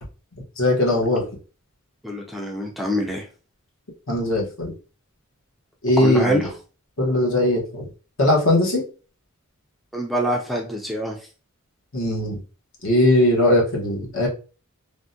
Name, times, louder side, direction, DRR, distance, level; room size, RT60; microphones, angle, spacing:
voice 1, 0.6-1.2 4.1-4.7 5.8-6.4 7.0-7.9 8.2-8.8 11.9-12.4 12.8-14.3, left 1 dB, 65° left, -2 dB, 1.0 m, -19 dB
voice 2, 2.0-3.3 6.0-6.5 9.9-11.2, equal, ahead, 0 dB, 0.4 m, -25 dB
3.4 x 2.1 x 2.6 m, 0.35 s
head